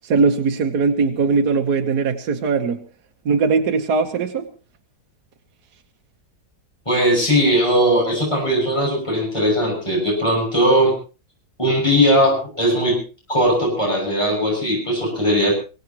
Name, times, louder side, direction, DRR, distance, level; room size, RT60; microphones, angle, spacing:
voice 1, 0.0-2.8 3.2-4.5, right 4 dB, 65° right, 1.7 m, -20 dB
voice 2, 6.9-10.9 11.6-13.0 13.3-15.5, equal, 15° left, 7.7 m, -18 dB
24.5 x 17.0 x 3.0 m
omnidirectional pair, 1.9 m